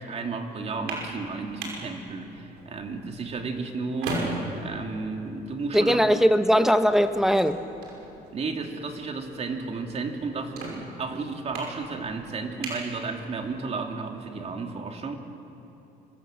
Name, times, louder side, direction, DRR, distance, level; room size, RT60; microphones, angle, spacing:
voice 1, 0.0-4.3 4.6-6.2 8.3-15.2, right 4 dB, 40° right, 3 dB, 2.7 m, -33 dB
sound 1, 0.6-13.7, right 2 dB, 90° right, 5.8 m, -40 dB
voice 2, 5.7-7.6, equal, ahead, 9 dB, 1.0 m, -20 dB
27.0 x 22.0 x 7.7 m, 2.9 s
cardioid pair, 110°, 17 cm